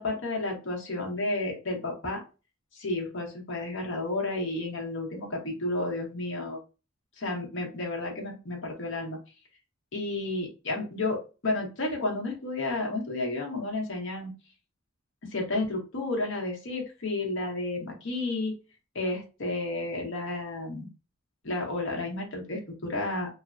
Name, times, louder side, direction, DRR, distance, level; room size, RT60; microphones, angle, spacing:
voice 1, 0.0-2.2 2.7-6.6 7.2-9.2 9.9-14.3 15.2-18.6 18.9-20.9 21.4-23.3, left 2 dB, 65° left, 1 dB, 0.9 m, -32 dB
3.1 x 2.1 x 2.4 m, 0.32 s
head